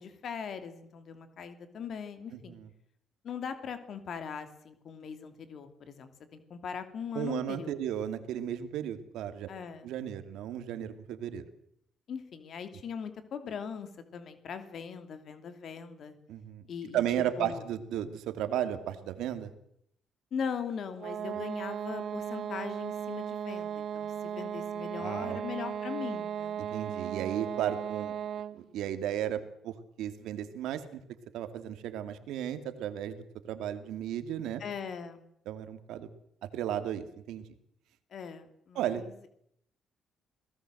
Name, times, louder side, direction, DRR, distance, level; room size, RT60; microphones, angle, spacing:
voice 1, 0.0-2.6 3.2-7.7 9.5-9.9 12.1-16.1 16.7-17.0 17.4-17.6 20.3-26.6 34.6-35.2 38.1-39.3, left 6 dB, 60° left, 9 dB, 3.0 m, -40 dB
voice 2, 2.3-2.7 7.1-9.5 9.8-11.4 16.3-16.6 16.9-19.5 25.0-25.4 26.6-28.2 28.5-31.0 31.3-34.6 35.5-36.1 36.5-37.4 38.7-39.0, right 10 dB, 90° right, 10 dB, 2.3 m, -34 dB
sound 1, 21.0-28.7, right 8 dB, 65° right, 1.3 m, -36 dB
27.0 x 18.0 x 7.8 m, 0.72 s
cardioid pair, 90°, 0 cm